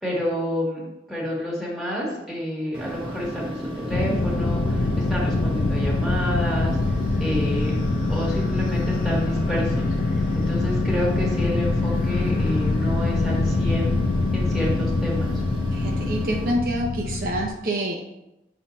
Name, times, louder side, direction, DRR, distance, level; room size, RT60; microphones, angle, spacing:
voice 1, 0.0-6.8 7.2-7.8 8.1-9.9 10.4-13.9 14.3-15.4, equal, ahead, -6 dB, 1.8 m, -29 dB
sound 1, 2.7-16.5, equal, 30° right, 1.0 m, -33 dB
sound 2, 3.9-17.5, left 3 dB, 50° left, 0.4 m, -24 dB
voice 2, 15.7-18.1, right 1 dB, 55° right, 0 dB, 0.7 m, -27 dB
7.3 x 2.8 x 5.3 m, 0.90 s
head